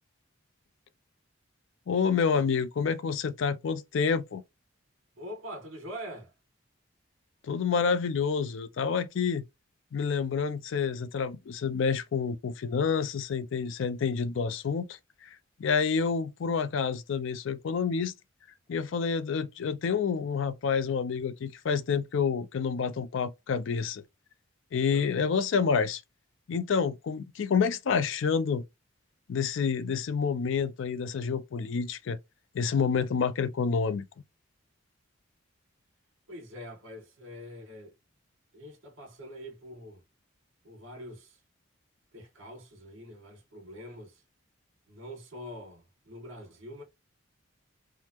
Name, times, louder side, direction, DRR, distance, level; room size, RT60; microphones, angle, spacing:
voice 1, 1.9-4.4 7.4-9.4 9.9-15.3 15.6-18.1 18.7-24.0 24.7-26.0 26.5-28.6 29.3-32.2 32.5-34.1, left 6 dB, 70° left, 0.4 m, -28 dB
voice 2, 5.1-6.3 24.8-25.1 36.3-37.9 38.5-40.0 40.6-41.4 42.1-44.2 44.9-46.8, equal, 75° right, 1.4 m, -44 dB
3.5 x 2.0 x 2.9 m
head